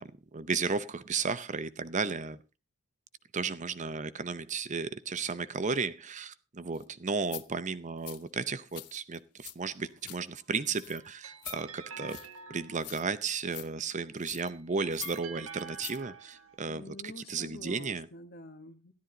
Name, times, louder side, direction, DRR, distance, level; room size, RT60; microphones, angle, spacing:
voice 1, 0.0-2.4 3.3-12.2 12.5-18.1, right 5 dB, 35° right, 0.7 m, -34 dB
sound 1, 6.7-6.8 7.2-7.4 8.0-8.2 8.7-9.5 9.8-10.2 10.7-11.0 11.4-11.6 12.1-12.4 12.8-13.2 13.5-13.7 14.2-14.5 14.9-15.2 15.6-16.0 16.3-16.4, left 15 dB, 85° left, 1.0 m, -44 dB
sound 2, 10.7-13.2 14.1-16.6, right 6 dB, 65° right, 1.2 m, -47 dB
voice 2, 16.7-18.9, left 2 dB, 45° left, 1.5 m, -47 dB
13.5 x 12.0 x 3.9 m
head